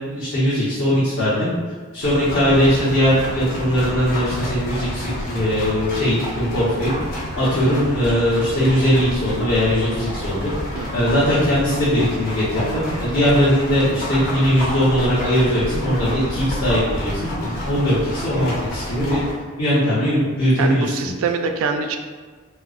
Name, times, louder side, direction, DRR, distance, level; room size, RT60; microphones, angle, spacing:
voice 1, 0.1-1.5 1.9-6.9 7.3-10.5 10.9-19.2 19.6-21.1, equal, 65° left, -13 dB, 0.9 m, -20 dB
sound 1, 2.0-19.3, equal, 40° left, 0.7 m, -29 dB
voice 2, 10.7-11.0 13.3-13.5 20.6-22.0, right 5 dB, 70° right, 5 dB, 0.3 m, -25 dB
4.3 x 2.0 x 2.4 m, 1.5 s
head